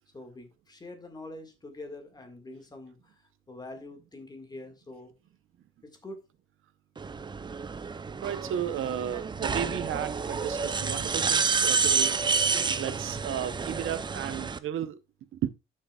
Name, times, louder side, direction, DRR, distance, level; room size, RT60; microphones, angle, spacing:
voice 1, 0.1-5.1 5.8-6.2, left 2 dB, 20° left, 1.8 m, -45 dB
sound 1, 7.0-14.6, right 5 dB, 20° right, 0.5 m, -29 dB
voice 2, 8.2-12.2 12.7-15.0 15.3-15.5, right 10 dB, 75° right, 0.8 m, -33 dB
11.5 x 6.5 x 2.3 m
wide cardioid pair, 165°, 21 cm